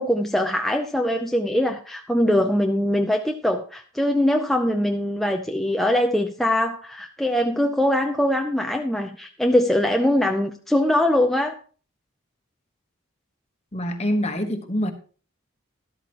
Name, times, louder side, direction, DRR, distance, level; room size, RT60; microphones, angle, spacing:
voice 1, 0.0-11.6, left 1 dB, ahead, 0.5 m, -22 dB
voice 2, 13.7-14.9, equal, 30° left, 1.2 m, -25 dB
13.0 x 12.0 x 3.0 m
head